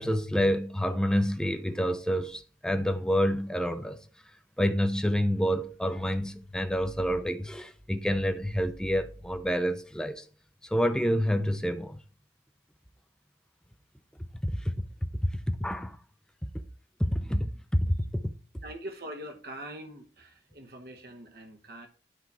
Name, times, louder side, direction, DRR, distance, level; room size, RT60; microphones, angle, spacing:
voice 1, 0.0-4.0 4.6-10.2 10.6-12.0 14.4-16.0 17.0-18.3, equal, 5° left, 0.6 m, -28 dB
voice 2, 18.6-21.9, right 1 dB, 55° right, 1.0 m, -43 dB
12.0 x 4.1 x 4.7 m
head